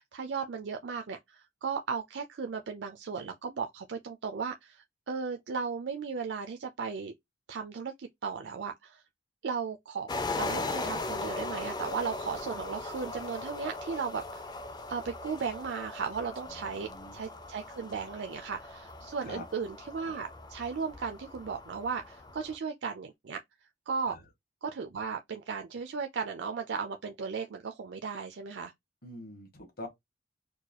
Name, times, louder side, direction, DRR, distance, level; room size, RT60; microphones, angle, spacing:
voice 1, 0.0-7.1 7.5-9.0 9.4-10.1 10.3-14.4 14.9-23.4 23.9-24.2 24.6-28.7, right 5 dB, 85° right, 0.5 m, -36 dB
sound 1, 10.1-22.6, left 2 dB, 25° left, 0.4 m, -39 dB
voice 2, 16.5-17.2 19.2-19.4 24.1-24.2 29.0-29.9, left 1 dB, 55° left, 1.7 m, -45 dB
4.5 x 2.2 x 2.9 m
head